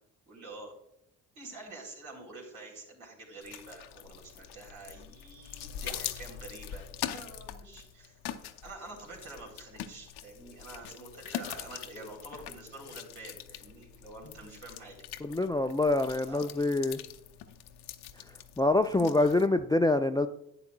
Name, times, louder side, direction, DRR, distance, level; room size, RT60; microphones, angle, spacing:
voice 1, 0.3-0.7 1.4-8.2 8.6-14.9 16.3-16.4, right 2 dB, 75° right, -2 dB, 3.6 m, -47 dB
sound 1, 3.4-19.5, left 11 dB, 55° left, 0.7 m, -43 dB
voice 2, 15.2-17.0 18.6-20.3, left 2 dB, 10° left, 9 dB, 0.4 m, -26 dB
11.5 x 8.7 x 2.3 m, 0.79 s
hypercardioid pair, 45°, 46 cm